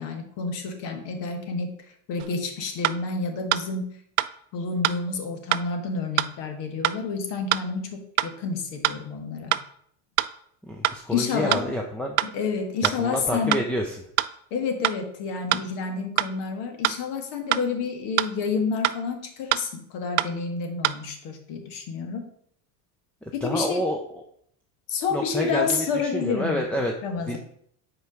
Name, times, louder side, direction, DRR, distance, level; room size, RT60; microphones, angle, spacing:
voice 1, 0.0-4.0 4.5-9.6 11.1-11.7 12.2-13.7 14.5-22.3 23.3-23.8 24.9-26.7 27.0-27.4, left 4 dB, 65° left, 6 dB, 1.6 m, -29 dB
sound 1, 2.2-2.3 2.8-3.0 3.5-3.6 4.2-4.3 4.8-5.0 5.5-5.6 6.2-6.3 6.8-7.0 7.5-7.6 8.2-8.3 8.8-9.0 9.5-9.6 10.2-10.3 10.8-11.0 11.5-11.6 12.2-12.3 12.8-13.0 13.5-13.6 14.2-14.3 14.8-15.0 15.5-15.6 16.2-16.3 16.8-17.0 17.5-17.6 18.2-18.3 18.8-19.0 19.5-19.6 20.2-20.3 20.8-21.0, right 17 dB, 75° right, 0.5 m, -23 dB
voice 2, 10.6-12.2 13.0-14.0 23.2-24.2 25.1-26.9 27.3-27.4, equal, 5° left, 1 dB, 0.4 m, -28 dB
5.3 x 4.6 x 6.1 m, 0.67 s
supercardioid pair, 125°, 46 cm